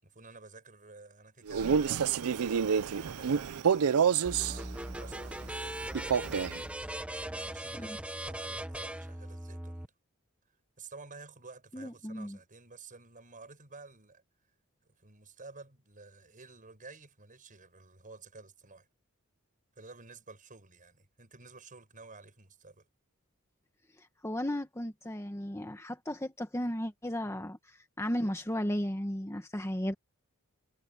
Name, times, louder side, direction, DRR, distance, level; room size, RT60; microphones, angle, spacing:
voice 1, 0.0-6.4 7.1-9.9 10.8-14.2 14.8-18.9 19.7-22.9 27.2-27.4, right 3 dB, 40° right, 6.0 m, -52 dB
Male speech man speaking, 1.5-4.6 5.9-6.6, right 7 dB, 75° right, 0.5 m, -28 dB
sound 1, 4.3-9.9, right 1 dB, 5° right, 1.1 m, -39 dB
voice 2, 11.7-12.4 24.0-29.9, equal, 15° left, 1.3 m, -35 dB
head